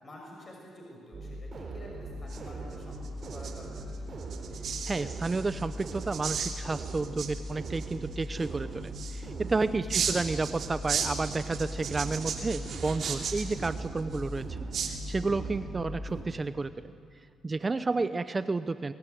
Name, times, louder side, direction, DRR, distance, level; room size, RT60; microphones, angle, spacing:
voice 1, 0.0-4.1 9.9-10.2, left 1 dB, 35° left, -1 dB, 6.2 m, -49 dB
sound 1, 1.1-16.2, right 1 dB, 40° right, 4.5 m, -39 dB
sound 2, 1.9-15.5, right 6 dB, 60° right, 3.1 m, -38 dB
voice 2, 4.9-16.9 17.4-18.9, right 3 dB, 25° right, 12 dB, 0.7 m, -31 dB
23.5 x 21.5 x 9.3 m, 2.2 s
cardioid pair, 90°, 0 cm